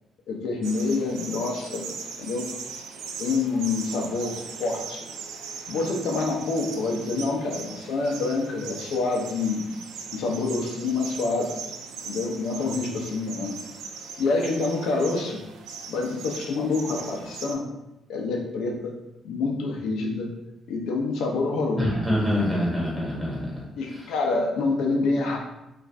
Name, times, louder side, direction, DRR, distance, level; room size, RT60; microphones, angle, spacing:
voice 1, 0.3-1.9 2.2-2.5 3.2-5.0 5.7-9.6 10.1-11.5 12.0-13.6 14.2-15.4 15.9-17.6 18.1-19.0 19.2-20.3 20.7-21.9 23.8-25.4, left 3 dB, 80° left, 1 dB, 0.6 m, -27 dB
sound 1, 0.6-17.5, right 5 dB, 90° right, 0.3 m, -39 dB
voice 2, 21.8-23.6 23.9-24.1, left 1 dB, 5° right, -6 dB, 1.3 m, -25 dB
2.5 x 2.4 x 3.2 m, 0.91 s
cardioid pair, 90°, 0 cm